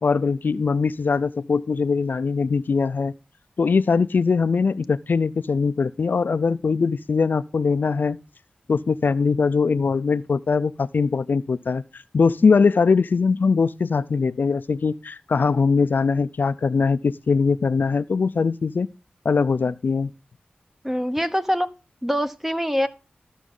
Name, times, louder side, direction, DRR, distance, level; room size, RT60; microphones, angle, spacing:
voice 1, 0.0-3.1 3.6-8.2 8.7-18.9 19.2-20.1, left 5 dB, 70° left, 0.4 m, -21 dB
voice 2, 20.8-21.7 22.0-22.9, equal, 10° right, 0.9 m, -24 dB
13.5 x 6.2 x 3.7 m
wide cardioid pair, 60°, 3 cm